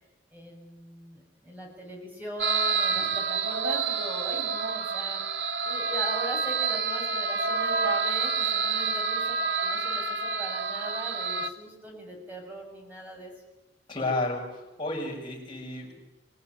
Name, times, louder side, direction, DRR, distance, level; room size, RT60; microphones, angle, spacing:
voice 1, 0.3-5.2 5.6-13.3, equal, 10° right, 0 dB, 6.8 m, -40 dB
sound 1, 2.4-11.5, right 4 dB, 85° right, 1.6 m, -28 dB
voice 2, 13.9-15.9, left 2 dB, 25° left, -2 dB, 7.8 m, -32 dB
25.5 x 17.5 x 9.6 m, 0.98 s
head